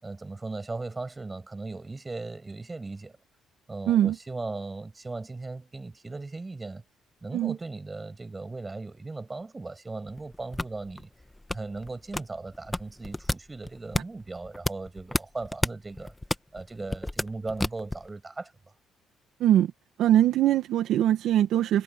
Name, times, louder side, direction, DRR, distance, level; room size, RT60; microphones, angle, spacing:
voice 1, 0.0-3.2 3.7-6.8 7.2-11.1 11.5-16.1 16.5-18.5, right 3 dB, 20° right, 6.4 m, -37 dB
sound 1, 10.1-18.1, left 1 dB, 10° left, 1.5 m, -31 dB
voice 2, 19.4-19.7 20.0-21.8, right 11 dB, 75° right, 1.3 m, -22 dB
cardioid pair, 85°, 0 cm